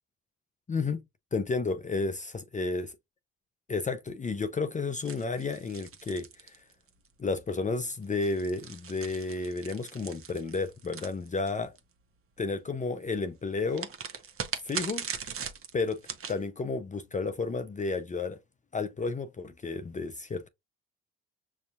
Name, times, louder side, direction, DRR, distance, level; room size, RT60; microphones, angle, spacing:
voice 1, 0.7-1.0 1.3-2.9 3.7-6.6 7.2-11.7 12.4-13.9 14.6-15.0 15.7-16.0 16.3-18.4 18.7-20.5, left 3 dB, 25° left, 0.5 m, -32 dB
sound 1, 5.0-7.1 8.0-11.8 13.7-16.4, right 7 dB, 45° right, 0.9 m, -40 dB
6.4 x 2.7 x 2.4 m
supercardioid pair, 65°, 30 cm